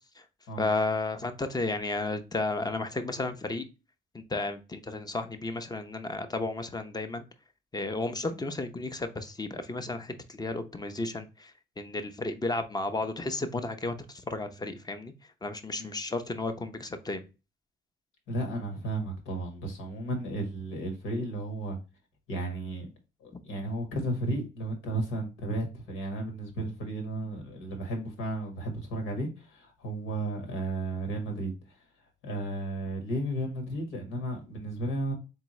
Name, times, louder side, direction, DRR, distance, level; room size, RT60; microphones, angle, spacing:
voice 1, 0.6-3.6 4.1-7.2 7.7-15.1 15.4-17.3, left 2 dB, 20° left, 0.7 m, -33 dB
voice 2, 18.3-21.8 22.3-22.9 23.2-31.5 32.2-35.1, right 1 dB, 90° left, 1.6 m, -33 dB
3.7 x 3.5 x 3.1 m
cardioid pair, 90°, 20 cm